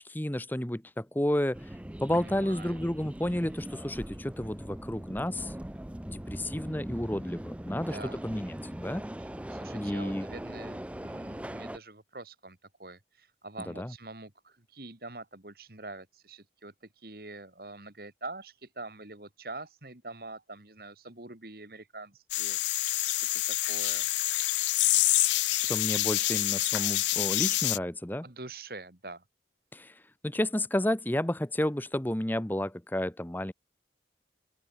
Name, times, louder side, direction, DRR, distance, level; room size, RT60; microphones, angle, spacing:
voice 1, 0.0-5.5 6.1-8.0 8.2-9.0 9.7-10.3 13.8-13.9 25.5-28.3 29.7-33.5, left 1 dB, 10° left, 0.8 m, -31 dB
Subway metro underground, 1.5-11.8, right 1 dB, 5° right, 0.4 m, -41 dB
voice 2, 2.1-2.8 7.7-8.2 9.2-24.1 28.2-29.2, right 2 dB, 55° right, 2.7 m, -45 dB
sound 1, 22.3-27.8, left 17 dB, 85° left, 0.5 m, -27 dB
open air
head